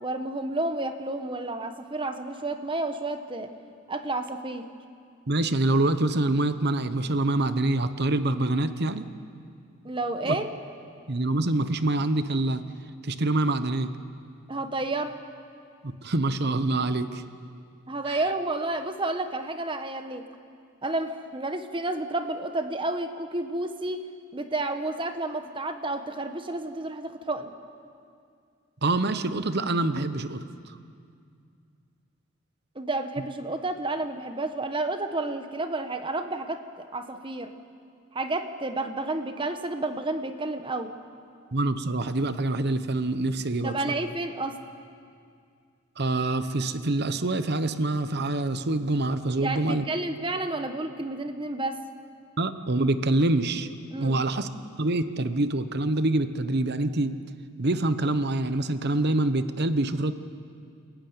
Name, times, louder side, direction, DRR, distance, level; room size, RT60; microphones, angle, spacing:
voice 1, 0.0-3.5 3.9-4.6 9.8-10.5 14.5-15.1 17.9-20.2 20.8-24.0 24.3-27.5 32.7-37.5 38.1-40.9 43.6-44.6 49.4-51.8 53.9-54.2, right 2 dB, 25° right, 8 dB, 1.2 m, -30 dB
voice 2, 5.3-9.0 10.2-10.4 11.1-12.6 13.0-13.9 15.8-17.2 18.1-18.2 28.8-30.4 41.5-44.0 46.0-49.8 52.4-53.7 54.0-54.5 54.8-57.1 57.6-60.1, right 2 dB, 50° right, 11 dB, 1.0 m, -25 dB
28.5 x 15.0 x 9.5 m, 2.3 s
head